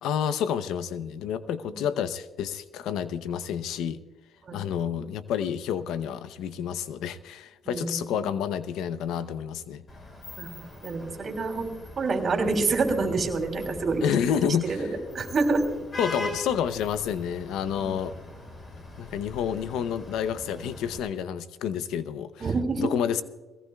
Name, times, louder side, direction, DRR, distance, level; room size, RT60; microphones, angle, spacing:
voice 1, 0.0-4.0 4.5-9.8 14.0-14.7 16.0-18.1 19.0-22.3 22.8-23.2, left 8 dB, 90° left, 13 dB, 0.7 m, -29 dB
voice 2, 7.6-8.3 10.4-14.1 14.3-15.7 17.8-17.9 22.4-22.9, right 3 dB, 50° right, 3 dB, 3.0 m, -28 dB
Vehicle horn car horn honking / Traffic noise roadway noise, 9.9-21.0, left 1 dB, 35° left, 4.7 m, -41 dB
21.5 x 17.0 x 2.3 m, 1.2 s
cardioid pair, 90°, 0 cm